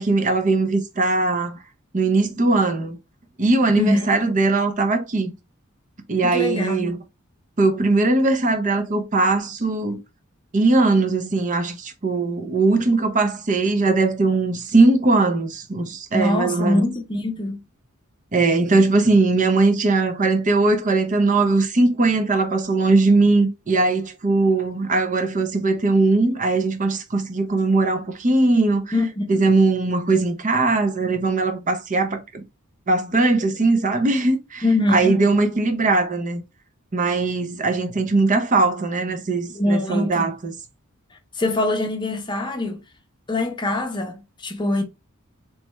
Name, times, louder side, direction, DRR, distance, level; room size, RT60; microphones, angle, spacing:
voice 1, 0.0-1.6 1.9-3.0 3.4-5.3 6.1-7.0 7.6-10.0 10.5-16.8 18.3-28.9 29.3-32.4 32.9-36.4 36.9-40.5, right 3 dB, 40° right, 0.6 m, -20 dB
voice 2, 3.7-4.1 6.2-6.9 16.1-17.6 28.9-29.2 34.6-35.2 39.5-40.3 41.4-42.8 43.3-44.8, left 2 dB, 20° left, 0.7 m, -23 dB
3.3 x 3.1 x 3.1 m
head